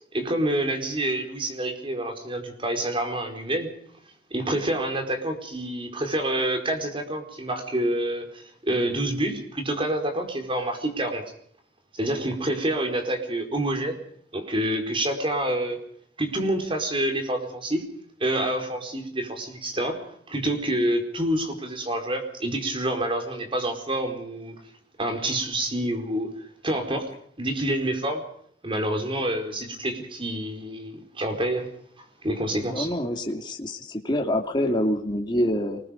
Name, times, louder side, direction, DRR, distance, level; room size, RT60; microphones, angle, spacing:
voice 1, 0.1-3.7 4.3-11.2 11.9-14.0 14.3-15.8 16.2-17.8 18.2-24.5 25.0-26.3 26.6-27.1 27.4-28.2 28.6-31.7 32.0-32.9, right 1 dB, 30° right, 5 dB, 4.7 m, -27 dB
voice 2, 32.6-35.8, left 1 dB, 25° left, 1 dB, 2.6 m, -26 dB
27.5 x 20.5 x 5.3 m, 0.64 s
head